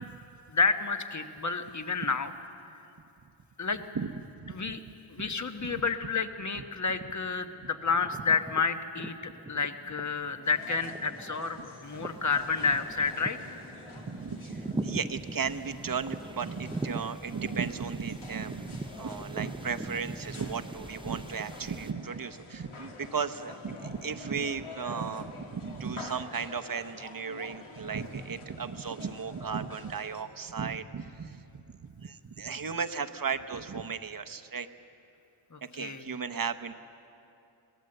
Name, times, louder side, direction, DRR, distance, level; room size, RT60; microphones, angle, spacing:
voice 1, 0.5-2.3 3.6-3.8 4.5-4.8 5.1-9.1 9.5-13.6 35.5-36.1, left 4 dB, 35° left, 7 dB, 1.2 m, -30 dB
sound 1, 6.8-7.4 7.7-21.9, right 2 dB, 10° right, 0.5 m, -42 dB
sound 2, 10.4-30.2, left 3 dB, 80° left, 2.3 m, -48 dB
voice 2, 14.1-34.7 35.7-36.7, right 6 dB, 45° right, 8 dB, 0.9 m, -35 dB
23.0 x 18.0 x 7.8 m, 2.7 s
wide cardioid pair, 100°, 49 cm